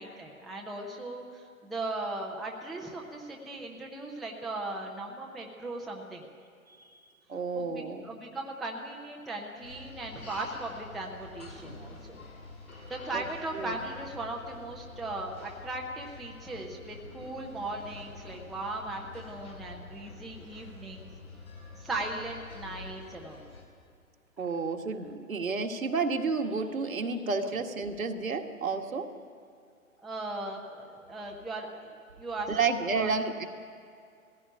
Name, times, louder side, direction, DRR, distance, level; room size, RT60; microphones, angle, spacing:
voice 1, 0.0-6.2 7.5-12.2 12.8-21.1 21.7-23.4 27.4-27.5 30.0-33.1, right 2 dB, ahead, -1 dB, 0.5 m, -38 dB
voice 2, 7.3-8.1 13.1-13.2 13.5-13.8 24.4-29.1 32.5-33.5, right 4 dB, 75° right, 3 dB, 1.9 m, -31 dB
sound 1, 9.6-23.6, left 3 dB, 85° left, 7.6 m, -48 dB
18.5 x 15.5 x 9.9 m, 2.3 s
figure-of-eight pair, 120°, 41 cm